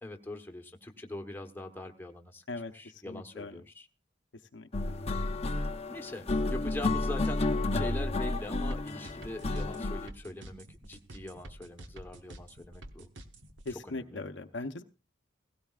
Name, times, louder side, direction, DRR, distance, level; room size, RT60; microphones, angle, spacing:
voice 1, 0.0-3.9 5.5-13.1 13.9-14.2, left 1 dB, 10° left, 1.1 m, -42 dB
voice 2, 2.5-3.6 4.5-4.7 13.6-14.8, left 3 dB, 65° left, 0.8 m, -40 dB
sound 1, 4.7-10.1, left 2 dB, 35° left, 0.7 m, -31 dB
sound 2, 8.7-13.7, right 1 dB, 70° right, 1.3 m, -48 dB
17.5 x 16.5 x 2.4 m
head